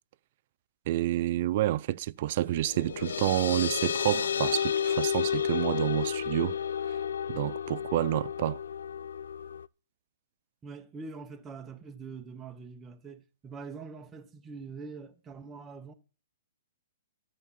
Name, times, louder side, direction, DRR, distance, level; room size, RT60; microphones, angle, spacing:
voice 1, 0.9-6.5 7.3-8.6, right 14 dB, 40° right, 0.5 m, -29 dB
sound 1, 2.5-9.7, left 8 dB, 80° left, 0.5 m, -31 dB
voice 2, 10.6-15.9, right 4 dB, 10° right, 1.2 m, -44 dB
13.0 x 5.3 x 7.3 m
hypercardioid pair, 160°, 0 cm